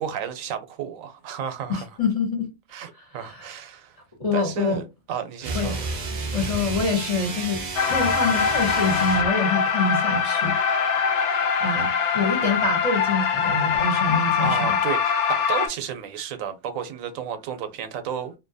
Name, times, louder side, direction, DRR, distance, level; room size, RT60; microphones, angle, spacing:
voice 1, 0.0-1.9 2.7-4.0 4.3-5.8 14.4-18.3, right 8 dB, 85° right, 1.0 m, -32 dB
voice 2, 1.7-2.5 3.2-3.5 4.2-4.8 5.5-6.0 6.3-7.6 7.9-11.1 11.6-14.8, left 4 dB, 35° left, 0.8 m, -26 dB
sound 1, 5.4-9.4, right 3 dB, 50° right, 0.5 m, -31 dB
sound 2, 7.8-15.7, left 6 dB, 70° left, 0.8 m, -23 dB
2.7 x 2.1 x 2.6 m
omnidirectional pair, 1.4 m